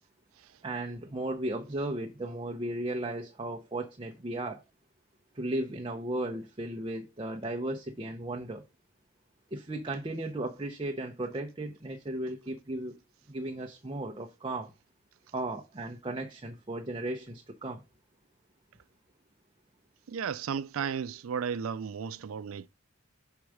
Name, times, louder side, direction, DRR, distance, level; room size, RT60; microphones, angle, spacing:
voice 1, 0.6-4.6 5.3-8.6 9.5-13.0 13.3-14.7 15.3-17.8, right 1 dB, 25° right, 0.7 m, -35 dB
voice 2, 20.1-22.7, right 7 dB, 90° right, 0.4 m, -34 dB
6.3 x 4.6 x 4.8 m
head